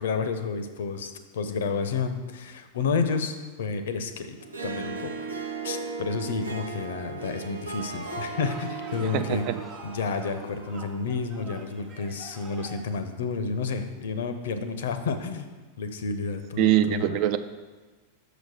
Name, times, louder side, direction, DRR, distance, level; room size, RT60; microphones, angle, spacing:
voice 1, 0.0-4.4 4.6-5.3 5.6-9.4 9.8-15.5 15.8-17.2, left 5 dB, 60° left, 9 dB, 0.6 m, -30 dB
Harp, 4.4-11.8, right 4 dB, 75° right, 0.7 m, -37 dB
sound 1, 7.8-12.8, right 4 dB, 25° right, 1.1 m, -46 dB
voice 2, 9.0-9.6 16.6-17.4, right 11 dB, 45° right, 11 dB, 0.4 m, -23 dB
6.4 x 5.0 x 6.2 m, 1.3 s
figure-of-eight pair, 90°, 0 cm